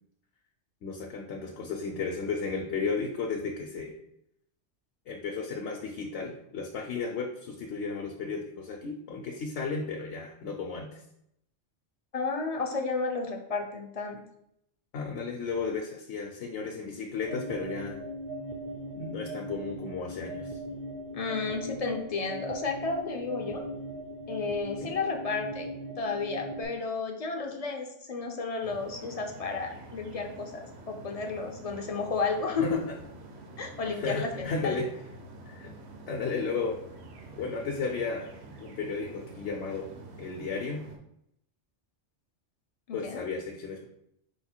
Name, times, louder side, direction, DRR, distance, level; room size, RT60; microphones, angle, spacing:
voice 1, 0.8-3.9 5.1-11.0 14.9-18.0 19.0-20.6 24.8-24.9 32.6-33.0 33.9-34.9 35.5-35.7 36.1-36.8 37.4-38.3 38.6-39.9 40.2-40.8 42.9-43.8, left 4 dB, 70° left, 0 dB, 0.9 m, -34 dB
voice 2, 12.1-14.2 21.1-23.6 24.3-25.7 26.0-32.7 33.6-34.8 42.9-43.2, left 4 dB, 45° left, 3 dB, 0.5 m, -32 dB
sound 1, 17.2-26.6, right 1 dB, 40° right, 0.5 m, -39 dB
sound 2, 28.6-41.0, right 2 dB, 65° right, 0.9 m, -47 dB
4.8 x 2.4 x 4.3 m, 0.76 s
omnidirectional pair, 1.2 m